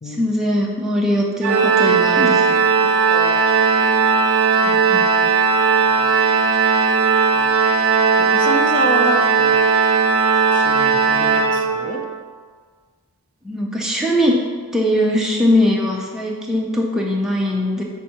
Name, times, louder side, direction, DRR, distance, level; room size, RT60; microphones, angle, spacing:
voice 1, 0.1-2.6 4.6-5.3 13.4-14.4 14.7-17.8, left 1 dB, ahead, -3 dB, 0.7 m, -20 dB
Organ, 1.4-12.2, right 5 dB, 65° right, 0.5 m, -17 dB
voice 2, 3.1-3.5 7.4-7.5 8.2-9.6 10.5-12.0, equal, 35° left, 3 dB, 0.6 m, -27 dB
5.8 x 3.7 x 4.4 m, 1.5 s
head